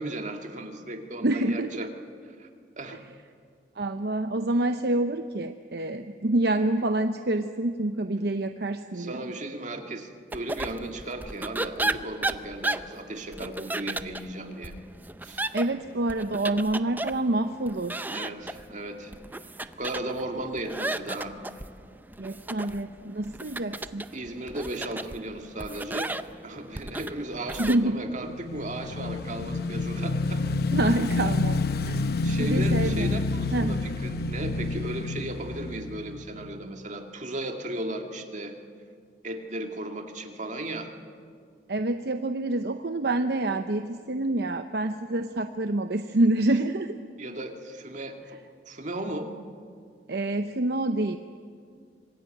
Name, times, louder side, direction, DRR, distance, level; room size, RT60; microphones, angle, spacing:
voice 1, 0.0-1.9 2.4-2.5 2.8-3.0 8.9-14.7 15.2-15.4 18.1-19.1 19.8-21.4 24.1-26.1 26.4-30.4 32.2-38.5 39.2-40.9 47.2-48.4 48.7-49.3, right 1 dB, 45° right, 4 dB, 2.1 m, -35 dB
voice 2, 1.2-1.9 3.8-9.3 15.5-18.1 22.2-24.0 27.6-28.3 30.7-31.6 31.8-33.2 33.5-33.7 41.7-47.0 50.1-51.2, right 2 dB, 65° right, 8 dB, 0.8 m, -27 dB
sound 1, 10.3-27.8, right 2 dB, 10° right, 0.6 m, -35 dB
Motorcycle / Engine, 28.1-36.6, left 3 dB, 60° left, 0.9 m, -28 dB
25.5 x 21.0 x 9.1 m, 2.3 s
head